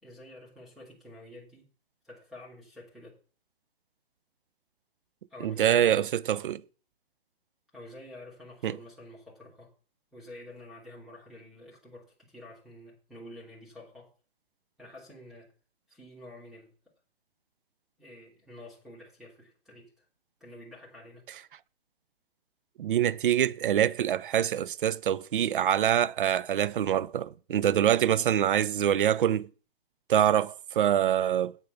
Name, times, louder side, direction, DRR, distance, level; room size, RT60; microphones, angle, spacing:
voice 1, 0.0-1.7 2.0-3.2 5.3-5.9 7.7-9.7 10.1-14.1 14.8-15.5 15.9-16.7 18.0-20.0 20.4-21.2, left 1 dB, ahead, 3.0 m, -48 dB
voice 2, 5.4-6.6 8.6-8.8 22.8-29.5 30.1-31.6, right 10 dB, 55° right, 0.7 m, -25 dB
8.4 x 7.0 x 6.9 m
hypercardioid pair, 145°, 30 cm